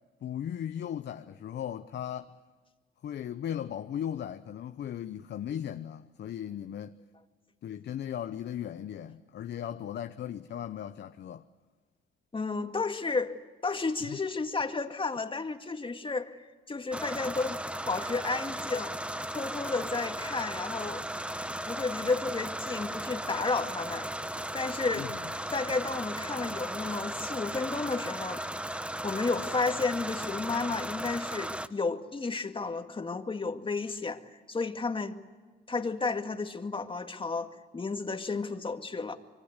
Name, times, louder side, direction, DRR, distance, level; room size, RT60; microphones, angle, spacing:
voice 1, 0.2-2.4 3.0-7.0 7.6-11.4 14.1-14.2 24.9-25.2, left 10 dB, 60° left, 0.9 m, -37 dB
voice 2, 12.3-13.3 13.6-17.6 17.9-18.9 19.3-21.0 21.6-24.1 24.5-25.1 25.5-28.4 29.0-34.2 34.5-35.2 35.7-39.2, left 4 dB, 25° left, 2.1 m, -32 dB
sound 1, 16.9-31.7, right 1 dB, 5° right, 1.0 m, -36 dB
26.0 x 23.5 x 8.2 m
cardioid pair, 90°, 20 cm